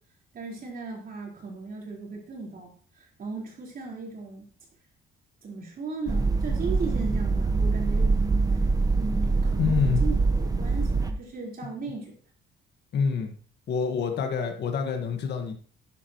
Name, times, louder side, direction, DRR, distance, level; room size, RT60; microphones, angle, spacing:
voice 1, 0.3-4.5 5.4-8.1 8.5-8.6 9.0-12.1, right 4 dB, 50° right, -1 dB, 4.5 m, -37 dB
sound 1, 6.1-11.1, right 3 dB, 20° right, 1.1 m, -24 dB
voice 2, 9.6-10.0 12.9-13.3 13.7-15.5, left 6 dB, 60° left, 4 dB, 1.7 m, -26 dB
11.0 x 10.0 x 3.1 m, 0.44 s
cardioid pair, 135°, 20 cm